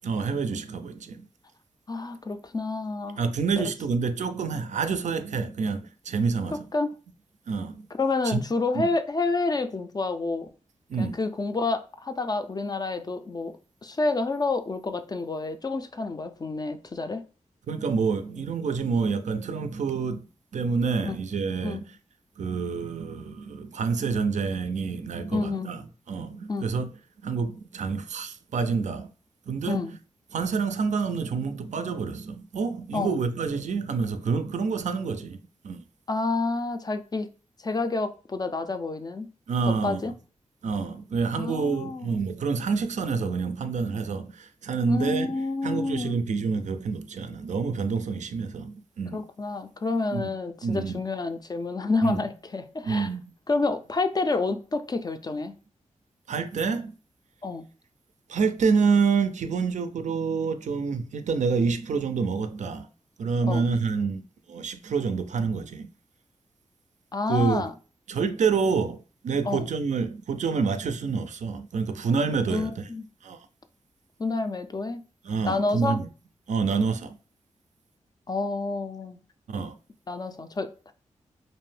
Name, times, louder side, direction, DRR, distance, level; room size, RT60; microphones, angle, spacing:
voice 1, 0.0-1.3 3.2-6.7 7.5-7.9 8.2-8.4 8.7-8.9 10.9-11.2 17.7-20.3 20.5-21.9 22.4-26.9 27.2-29.1 29.5-29.9 30.3-35.4 35.6-35.8 39.5-40.1 40.6-45.4 45.6-49.2 50.1-50.3 50.6-51.0 52.0-52.2 52.8-53.2 56.3-57.0 58.3-62.9 63.2-65.9 67.3-67.7 68.1-72.9 73.2-73.5 75.2-76.1 76.5-77.2 79.5-79.8, right 5 dB, 65° right, 0.4 m, -27 dB
voice 2, 1.9-3.3 3.6-3.7 6.7-6.9 8.0-10.5 11.0-13.5 13.8-17.2 21.1-21.2 21.6-21.8 25.3-25.7 26.5-26.7 29.6-29.9 32.9-33.2 36.1-37.3 37.6-39.3 39.8-40.1 41.4-42.2 44.9-46.2 49.1-53.1 53.5-55.5 57.4-57.6 63.5-63.6 67.1-67.7 69.5-69.7 72.5-73.0 74.2-75.0 75.4-76.0 78.3-79.2 80.1-80.9, left 3 dB, 30° left, 0.3 m, -29 dB
2.5 x 2.0 x 3.2 m
cardioid pair, 55°, 13 cm